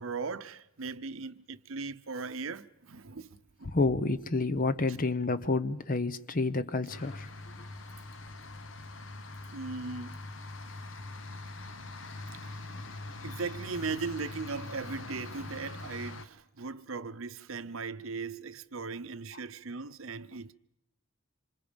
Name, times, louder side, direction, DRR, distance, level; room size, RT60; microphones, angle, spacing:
voice 1, 0.0-3.7 9.5-10.2 12.4-12.6 13.2-20.5, right 4 dB, 70° right, 0.8 m, -38 dB
voice 2, 3.6-7.3 7.6-7.7 12.7-13.0, left 3 dB, 40° left, 0.8 m, -29 dB
sound 1, 6.9-16.3, left 2 dB, 65° left, 1.1 m, -43 dB
27.0 x 26.0 x 5.2 m
head